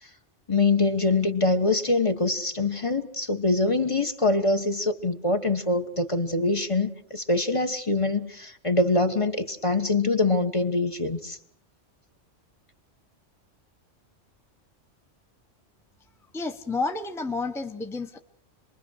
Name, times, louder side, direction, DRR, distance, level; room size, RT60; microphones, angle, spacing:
voice 1, 0.5-11.4, left 2 dB, 25° left, 6 dB, 1.4 m, -24 dB
voice 2, 16.3-18.2, left 3 dB, ahead, 6 dB, 0.9 m, -30 dB
27.0 x 21.5 x 6.4 m, 0.68 s
omnidirectional pair, 1.2 m